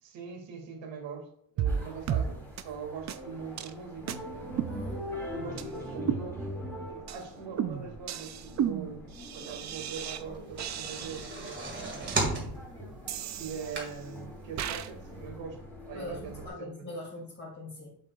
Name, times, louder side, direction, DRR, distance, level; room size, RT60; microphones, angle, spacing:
voice 1, 0.0-1.3 1.5-4.7 5.3-6.4 6.9-9.1 9.3-11.3 11.8-12.6 13.3-16.9, right 6 dB, 75° right, 3 dB, 2.2 m, -42 dB
sound 1, 1.6-1.8 2.1-2.3 2.6-2.7 3.1-3.2 3.6-3.7 4.1-4.2 4.6-5.2 5.6-5.7 6.1-6.7 7.1-7.2 7.6-10.2 10.6-11.5 12.1-12.2 13.1-14.0 14.6-14.9, right 8 dB, 40° right, 0.4 m, -34 dB
sound 2, 1.7-16.5, equal, 5° left, 2.9 m, -43 dB
voice 2, 4.6-5.0 15.9-18.0, left 1 dB, 25° left, -7 dB, 2.9 m, -41 dB
sound 3, 10.3-14.3 14.7-14.8 15.1-15.2, right 2 dB, 25° right, 2.0 m, -34 dB
7.6 x 7.5 x 2.4 m, 0.66 s
cardioid pair, 165°, 45 cm